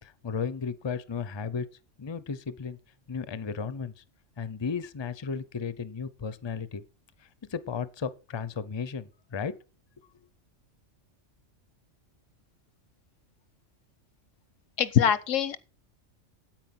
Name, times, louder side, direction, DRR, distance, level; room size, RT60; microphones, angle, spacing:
voice 1, 0.0-1.7 2.0-2.8 3.1-4.0 4.4-6.8 7.5-9.5, left 6 dB, 25° left, 0.6 m, -34 dB
voice 2, 14.8-15.6, left 9 dB, 80° left, 1.2 m, -23 dB
9.0 x 8.9 x 6.0 m
omnidirectional pair, 1.3 m